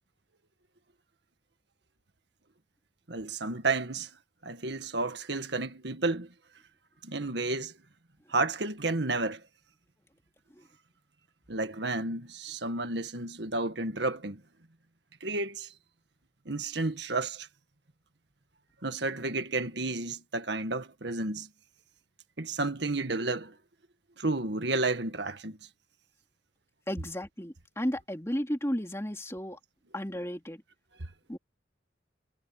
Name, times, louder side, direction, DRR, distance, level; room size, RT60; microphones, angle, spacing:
voice 1, 3.1-4.1 4.4-6.3 7.0-7.7 8.3-9.4 11.5-14.4 15.2-15.7 16.5-17.5 18.8-21.5 22.4-23.5 24.2-25.6, right 3 dB, 70° right, 1.8 m, -31 dB
voice 2, 26.9-29.6 29.9-30.6 31.3-31.4, equal, 15° left, 2.9 m, -33 dB
head